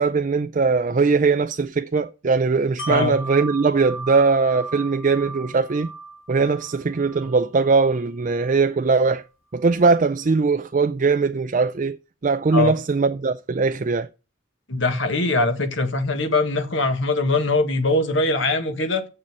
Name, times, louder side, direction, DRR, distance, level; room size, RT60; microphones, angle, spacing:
voice 1, 0.0-5.9 6.3-9.2 9.5-12.0 12.2-14.1, right 4 dB, 40° right, 0.4 m, -20 dB
Wind chime, 2.8-8.6 9.0-9.1, right 3 dB, 85° left, 2.7 m, -38 dB
voice 2, 2.9-3.2 12.5-12.8 14.7-19.1, left 2 dB, 70° left, 1.7 m, -22 dB
7.3 x 6.5 x 7.6 m
head